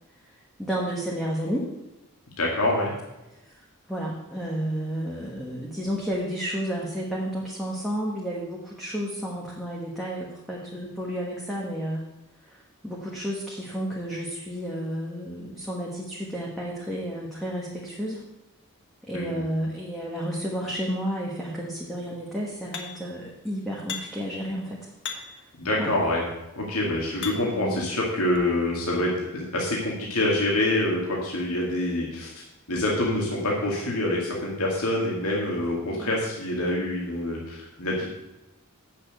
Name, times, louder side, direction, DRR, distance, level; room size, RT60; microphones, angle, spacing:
voice 1, 0.6-1.7 3.5-12.0 12.5-18.2 19.0-24.9 25.3-25.4 25.8-25.9 27.3-27.8 35.9-36.1, equal, ahead, -4 dB, 1.3 m, -31 dB
voice 2, 2.4-2.9 19.1-19.4 25.6-26.2 26.6-38.1, left 1 dB, 75° left, -3 dB, 2.2 m, -26 dB
sound 1, 22.7-23.2 23.9-24.3 25.0-25.5 26.3-27.7 28.3-28.4, left 6 dB, 55° left, 1.3 m, -37 dB
8.5 x 6.7 x 6.6 m, 0.98 s
head